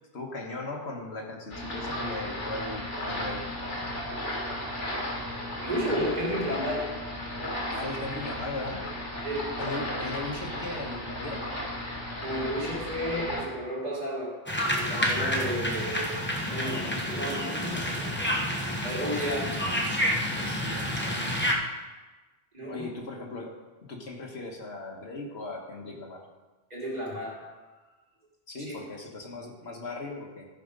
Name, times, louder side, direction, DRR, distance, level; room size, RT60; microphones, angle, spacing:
voice 1, 0.1-3.4 7.7-8.8 9.6-11.5 19.6-20.0 20.4-21.3 22.6-23.5 23.9-26.2 28.5-30.5, left 2 dB, 65° left, 0 dB, 1.7 m, -38 dB
sound 1, 1.5-13.4, left 1 dB, 85° left, 2.6 m, -35 dB
voice 2, 5.6-7.0 9.2-9.5 12.2-18.2 18.8-19.8 22.5-22.9 26.7-27.5 28.6-28.8, equal, 35° right, -4 dB, 2.9 m, -33 dB
sound 2, 14.5-21.5, equal, 10° left, 1.1 m, -29 dB
13.5 x 5.9 x 5.2 m, 1.2 s
omnidirectional pair, 1.2 m